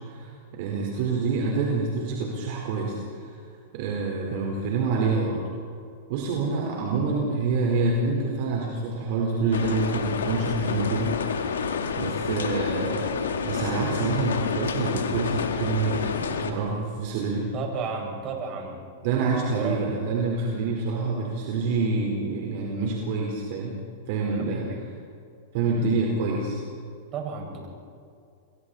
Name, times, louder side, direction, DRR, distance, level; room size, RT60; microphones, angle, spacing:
voice 1, 0.0-3.3 3.7-5.4 6.1-11.5 12.0-17.5 19.0-23.7 24.1-24.9 25.5-26.6, right 3 dB, 55° right, -1 dB, 4.4 m, -27 dB
sound 1, 9.5-16.5, left 6 dB, 80° left, 2.2 m, -29 dB
voice 2, 17.5-18.8 19.5-19.9 24.3-24.8 27.1-27.7, right 5 dB, 40° right, 1 dB, 6.5 m, -33 dB
29.0 x 22.0 x 4.3 m, 2.4 s
hypercardioid pair, 105°, 0 cm